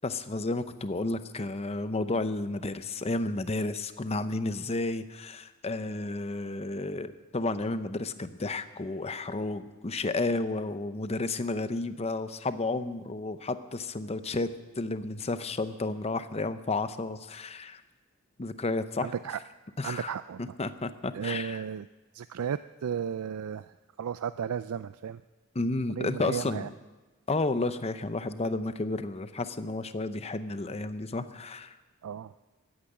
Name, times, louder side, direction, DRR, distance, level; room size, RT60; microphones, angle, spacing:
voice 1, 0.0-14.5 14.8-17.8 18.4-19.1 19.8-20.1 20.4-21.6 25.5-26.7 27.3-31.8, left 2 dB, 30° left, 11 dB, 0.7 m, -32 dB
voice 2, 19.0-19.4 19.8-20.6 21.1-21.9 22.1-25.2 25.9-26.7 32.0-32.3, right 8 dB, 80° right, 13 dB, 0.4 m, -34 dB
14.5 x 10.0 x 9.0 m, 1.2 s
head